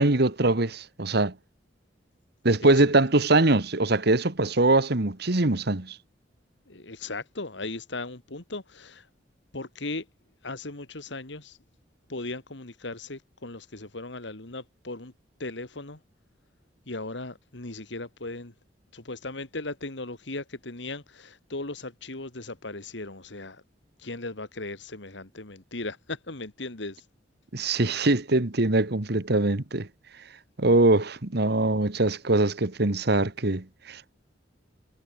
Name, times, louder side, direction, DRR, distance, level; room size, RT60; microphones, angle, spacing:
voice 1, 0.0-1.3 2.4-6.0 27.5-29.9 30.6-34.0, right 2 dB, 60° right, 1.6 m, -22 dB
voice 2, 2.6-2.9 6.7-9.1 9.5-10.1 10.4-11.6 12.1-15.1 15.4-16.0 16.9-18.5 18.9-23.6 24.0-27.1, left 2 dB, 70° left, 2.4 m, -37 dB
head